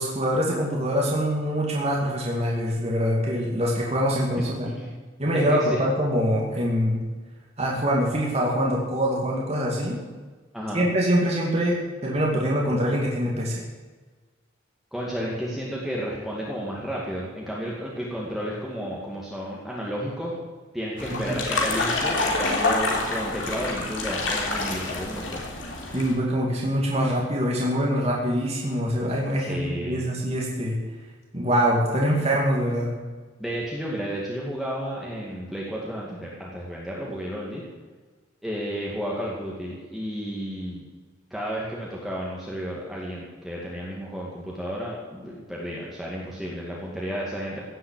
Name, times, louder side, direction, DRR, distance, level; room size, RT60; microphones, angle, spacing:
voice 1, 0.0-4.7 5.2-7.0 7.6-10.0 10.7-13.6 25.9-30.8 31.3-32.9, equal, 30° right, -2 dB, 2.4 m, -24 dB
voice 2, 5.3-5.8 10.5-10.9 14.9-20.4 20.7-25.4 29.4-30.1 33.4-37.6 38.4-40.9 41.3-47.6, equal, ahead, -5 dB, 2.3 m, -32 dB
sound 1, 21.0-26.1, left 2 dB, 70° left, 3.4 m, -27 dB
16.5 x 7.8 x 8.4 m, 1.4 s
head